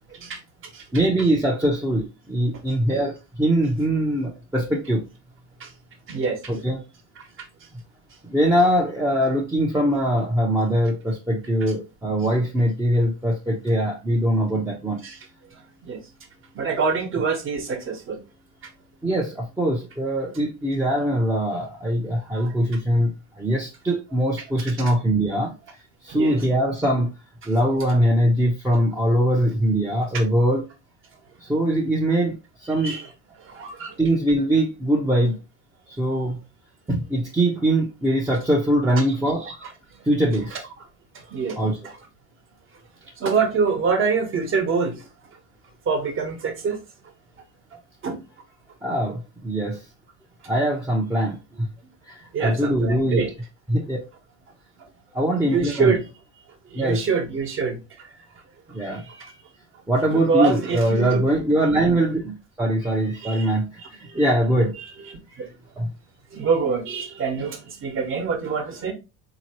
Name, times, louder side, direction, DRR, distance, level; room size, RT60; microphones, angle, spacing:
voice 1, 0.9-5.0 6.5-6.8 8.2-15.0 19.0-25.5 26.0-27.1 27.5-30.6 31.4-32.9 34.0-35.4 35.9-36.4 36.9-39.5 40.0-40.6 41.6-41.8 48.8-49.8 50.4-51.7 52.1-53.3 53.7-54.0 55.1-55.9 56.7-57.0 58.7-59.3 59.9-64.8 65.3-65.5 65.8-65.9, right 1 dB, 10° right, 0.8 m, -22 dB
voice 2, 6.1-6.4 15.0-15.2 15.5-16.0 16.5-18.2 22.3-22.5 26.1-26.4 32.8-33.1 33.4-34.0 38.9-39.0 39.4-39.7 41.3-41.9 43.2-45.1 45.8-46.8 48.0-48.2 52.3-53.3 55.4-56.0 56.7-58.1 59.1-59.2 60.1-61.2 61.9-62.0 63.2-63.5 64.1-64.2 65.4-65.5 66.3-68.9, right 5 dB, 40° right, 1.2 m, -25 dB
3.7 x 2.9 x 2.9 m
supercardioid pair, 115°, 33 cm